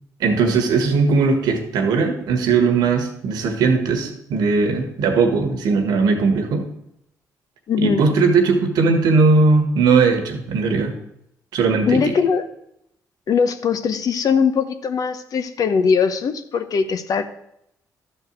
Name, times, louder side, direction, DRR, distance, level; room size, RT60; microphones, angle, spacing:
voice 1, 0.2-6.6 7.8-10.9 11.5-12.0, right 4 dB, 85° right, 5 dB, 1.5 m, -18 dB
voice 2, 7.7-8.0 11.9-12.4 13.3-17.3, left 6 dB, 65° left, 10 dB, 0.9 m, -20 dB
12.0 x 4.6 x 7.4 m, 0.78 s
cardioid pair, 75°, 7 cm